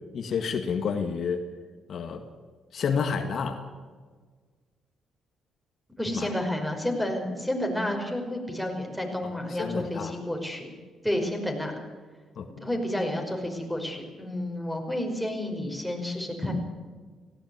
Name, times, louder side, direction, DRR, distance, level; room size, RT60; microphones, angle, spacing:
voice 1, 0.1-1.4 1.9-2.2 2.7-3.6 6.1-6.3 9.5-10.1 12.4-12.5, left 6 dB, 60° left, 5 dB, 1.9 m, -29 dB
voice 2, 6.0-10.7 11.0-11.8 12.6-16.5, left 1 dB, ahead, 3 dB, 5.5 m, -30 dB
18.0 x 16.5 x 9.6 m, 1.5 s
cardioid pair, 90°, 0 cm